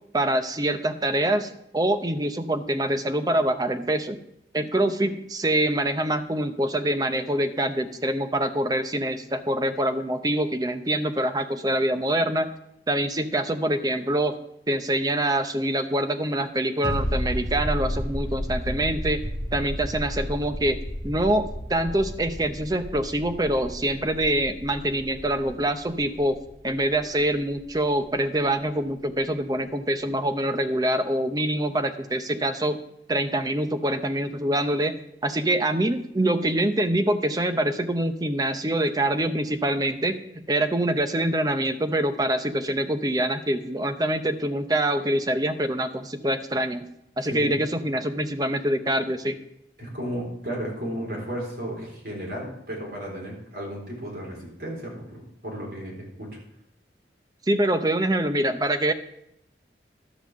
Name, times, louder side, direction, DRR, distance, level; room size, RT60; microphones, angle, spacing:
voice 1, 0.1-4.2 4.5-12.5 12.9-14.4 14.7-19.2 19.5-20.8 21.0-26.4 26.6-32.8 33.1-34.9 35.2-46.8 47.2-49.4 57.5-58.9, right 1 dB, 20° right, 8 dB, 0.7 m, -25 dB
sound 1, 16.8-28.2 28.5-28.6, equal, 45° right, 1.8 m, -33 dB
voice 2, 47.3-47.6 49.8-56.4, equal, 60° right, -2 dB, 4.1 m, -34 dB
12.0 x 5.6 x 7.4 m, 0.78 s
head